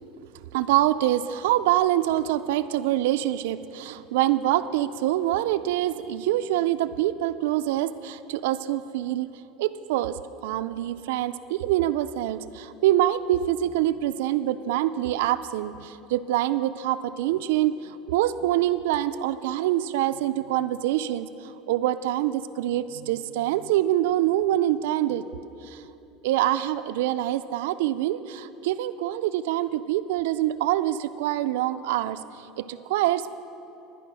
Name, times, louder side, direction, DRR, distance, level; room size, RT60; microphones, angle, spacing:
voice 1, 0.5-9.3 9.6-25.2 25.6-25.8 26.2-32.2 32.6-33.4, right 13 dB, 90° right, 11 dB, 0.4 m, -25 dB
11.5 x 10.0 x 6.1 m, 2.9 s
cardioid pair, 165°, 0 cm